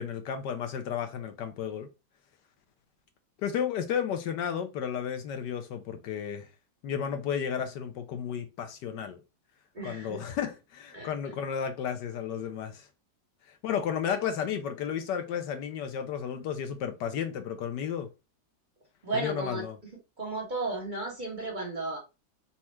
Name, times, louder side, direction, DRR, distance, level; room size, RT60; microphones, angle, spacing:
voice 1, 0.0-1.9 3.4-6.5 6.8-9.2 9.8-12.9 13.5-18.1 19.1-19.8, left 8 dB, 75° left, 1.2 m, -33 dB
voice 2, 9.7-10.2 10.9-11.1 19.0-19.6 20.2-22.0, right 3 dB, 30° right, 1.2 m, -34 dB
4.2 x 2.4 x 4.4 m
omnidirectional pair, 2.0 m